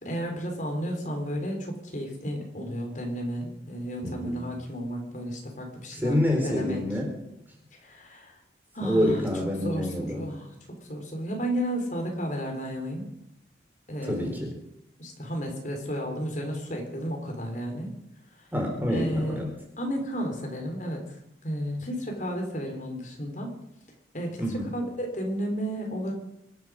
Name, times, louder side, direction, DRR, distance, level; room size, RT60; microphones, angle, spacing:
voice 1, 0.0-6.2 6.4-6.8 7.7-8.4 8.7-9.3 9.6-10.5 10.9-13.0 13.9-14.5 15.0-17.9 18.4-18.5 18.9-19.5 19.8-21.2 21.4-23.5 24.1-26.1, equal, 45° left, 2 dB, 4.1 m, -32 dB
voice 2, 4.0-4.4 6.0-7.1 8.8-10.3 14.1-14.5 18.5-19.5 24.4-24.7, left 1 dB, 10° right, 1 dB, 4.1 m, -27 dB
24.5 x 9.0 x 6.4 m, 0.82 s
head